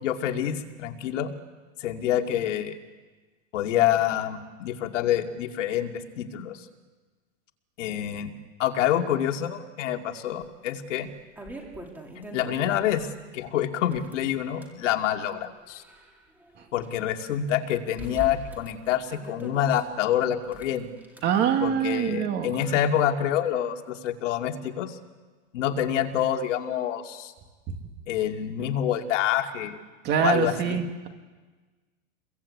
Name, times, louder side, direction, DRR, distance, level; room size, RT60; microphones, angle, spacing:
voice 1, 0.0-1.3 1.8-2.8 3.5-6.6 7.8-8.3 8.6-11.1 12.3-13.1 13.3-15.8 16.7-20.9 21.6-25.0 25.5-27.3 28.1-29.8 30.2-30.8, left 10 dB, 60° left, 4 dB, 2.5 m, -27 dB
sound 1, 10.4-10.5 11.0-13.1 13.8-14.8 15.4-16.9 17.2-17.3 18.0-19.8 20.5-21.2, equal, 5° right, 2.4 m, -42 dB
voice 2, 21.2-22.5 27.7-27.8 30.0-31.1, right 8 dB, 25° right, 5 dB, 2.3 m, -25 dB
30.0 x 22.5 x 8.6 m, 1.3 s
supercardioid pair, 175°, 41 cm